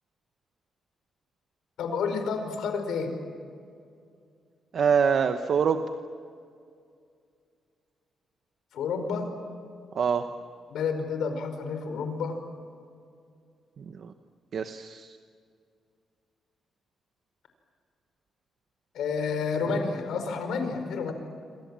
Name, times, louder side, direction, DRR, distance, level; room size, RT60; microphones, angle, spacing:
voice 1, 1.8-3.1 8.7-9.3 10.7-12.4 18.9-21.1, left 5 dB, 75° left, 7 dB, 4.8 m, -30 dB
voice 2, 4.7-5.8 9.9-10.2 13.8-14.1 14.5-15.1, right 6 dB, 45° right, 8 dB, 1.0 m, -25 dB
28.5 x 26.0 x 7.6 m, 2.4 s
wide cardioid pair, 175°, 0 cm